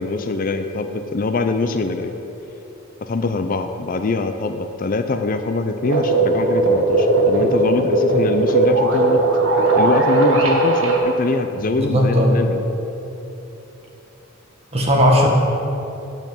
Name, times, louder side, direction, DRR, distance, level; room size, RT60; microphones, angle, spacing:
voice 1, 0.0-2.1 3.0-9.2 9.8-12.6, left 3 dB, 40° left, 8 dB, 0.5 m, -23 dB
sound 1, 5.8-11.0, right 2 dB, 70° right, 1.7 m, -17 dB
voice 2, 11.6-12.3 14.7-15.3, equal, 30° right, -1 dB, 1.7 m, -16 dB
9.1 x 8.1 x 7.2 m, 3.0 s
head